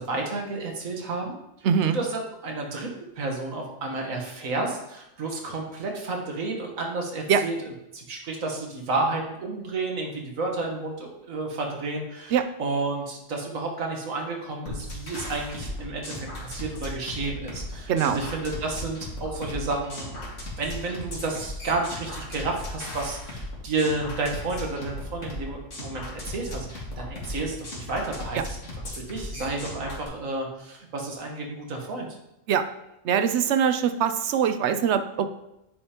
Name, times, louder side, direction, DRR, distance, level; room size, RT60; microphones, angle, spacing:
voice 1, 0.0-1.4 1.8-2.9 3.1-28.6 29.0-32.1, right 3 dB, 85° right, 1 dB, 1.7 m, -31 dB
voice 2, 1.6-2.0 7.3-7.4 12.3-12.4 17.9-18.2 28.3-28.4 32.5-32.6 33.0-35.3, right 8 dB, 65° right, 10 dB, 0.8 m, -22 dB
sound 1, 14.7-30.1, left 1 dB, 70° left, 2.1 m, -37 dB
9.7 x 5.1 x 2.9 m, 0.89 s
omnidirectional pair, 1.4 m